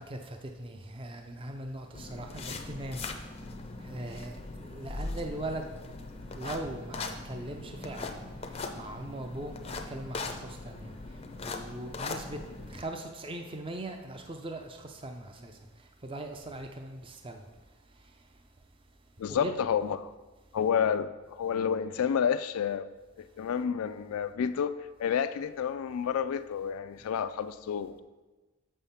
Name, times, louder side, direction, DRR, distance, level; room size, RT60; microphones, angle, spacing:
voice 1, 0.0-3.1 3.8-5.6 6.3-8.2 8.8-10.9 11.4-12.4 12.7-15.5 16.0-17.4 19.3-19.6, right 1 dB, 25° right, 5 dB, 0.5 m, -40 dB
sound 1, 1.9-12.8, left 3 dB, 25° left, 0.5 m, -40 dB
voice 2, 19.2-20.0 20.5-22.9 23.2-28.0, left 7 dB, 85° left, 12 dB, 0.3 m, -30 dB
7.2 x 5.5 x 5.6 m, 1.2 s
head